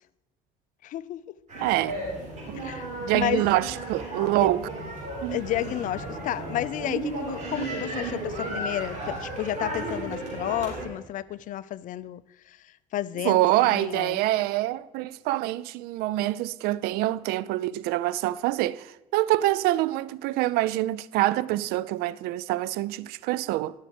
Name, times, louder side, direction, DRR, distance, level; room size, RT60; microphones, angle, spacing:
voice 1, 0.8-1.2 2.6-2.9 3.1-3.4 4.4-4.5 5.3-14.2, left 13 dB, 55° left, 0.4 m, -32 dB
sound 1, 1.5-10.9, right 2 dB, 45° right, 4.1 m, -34 dB
voice 2, 1.6-2.0 3.0-4.7 5.2-5.4 13.2-18.9 19.1-23.7, right 16 dB, 75° right, 0.4 m, -25 dB
10.5 x 6.4 x 5.0 m
supercardioid pair, 80°, 16 cm